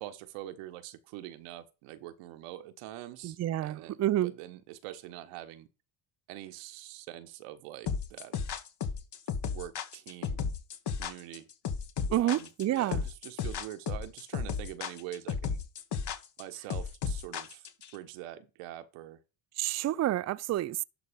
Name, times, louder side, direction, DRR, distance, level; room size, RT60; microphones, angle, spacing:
voice 1, 0.0-5.7 6.3-8.3 9.5-10.4 11.0-11.5 12.2-15.6 16.4-17.6 17.9-19.2, right 13 dB, 85° right, 1.3 m, -44 dB
voice 2, 3.2-4.3 12.1-13.0 19.6-20.8, right 13 dB, 35° right, 0.4 m, -29 dB
sound 1, 7.9-17.9, left 6 dB, 55° left, 1.7 m, -34 dB
11.5 x 3.9 x 5.2 m
supercardioid pair, 80°, 50 cm